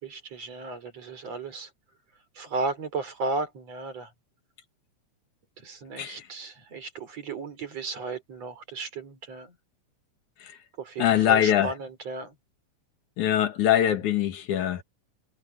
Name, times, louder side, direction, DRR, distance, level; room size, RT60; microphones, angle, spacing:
voice 1, 0.0-1.7 2.4-4.1 5.6-9.6 10.8-12.4, right 3 dB, 55° right, 5.5 m, -34 dB
voice 2, 11.0-11.7 13.2-14.8, left 11 dB, 75° left, 3.0 m, -23 dB
omnidirectional pair, 3.5 m